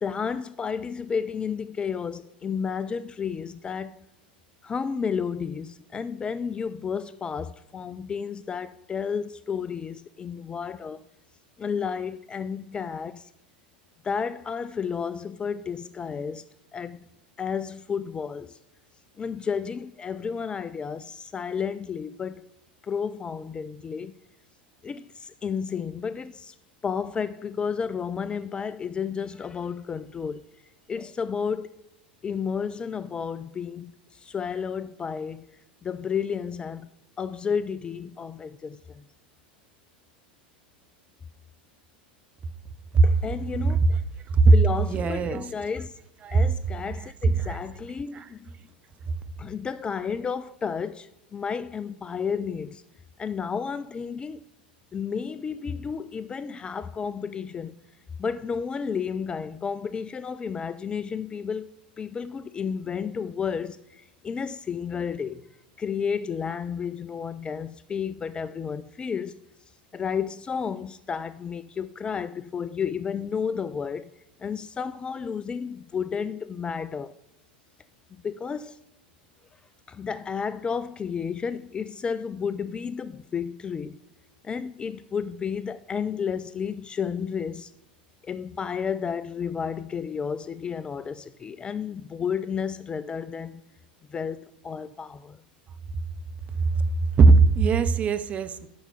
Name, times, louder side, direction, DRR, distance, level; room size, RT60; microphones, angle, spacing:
voice 1, 0.0-4.0 4.6-11.0 11.6-13.3 14.0-16.4 16.7-17.0 17.4-18.6 19.2-22.4 22.8-24.1 24.8-26.6 26.8-30.4 30.9-31.7 32.2-35.5 35.8-36.9 37.2-39.0 43.0-44.0 44.5-45.9 46.3-48.6 49.4-52.8 53.2-54.4 54.9-57.7 58.2-61.7 62.0-65.4 65.8-69.4 69.9-74.1 74.4-77.1 78.2-78.8 79.9-84.0 84.4-87.7 88.2-93.6 94.1-95.4, left 6 dB, 20° left, 0.3 m, -32 dB
voice 2, 44.8-45.4 46.2-46.4 47.4-47.6 48.1-48.2 96.7-96.8 97.2-98.7, right 4 dB, 25° right, 0.7 m, -18 dB
7.6 x 6.0 x 6.9 m
figure-of-eight pair, 85°, 5 cm